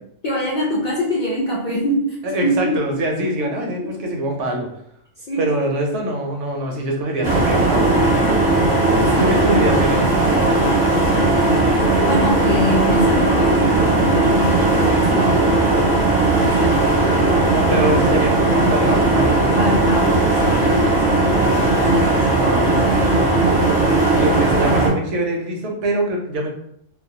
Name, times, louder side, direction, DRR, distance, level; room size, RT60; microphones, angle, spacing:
voice 1, 0.2-3.0 3.4-3.9 5.2-5.6 9.1-9.4 10.1-11.4 12.0-15.8 16.2-16.8 19.6-21.3 21.9-23.0, left 1 dB, 65° left, -5 dB, 0.4 m, -25 dB
voice 2, 2.2-4.7 5.4-8.4 9.1-10.1 17.5-20.0 22.3-23.5 23.8-26.5, right 1 dB, 75° right, 2 dB, 0.9 m, -24 dB
sound 1, 7.2-24.9, right 2 dB, 30° right, 0.5 m, -17 dB
2.3 x 2.0 x 2.6 m, 0.71 s
omnidirectional pair, 1.3 m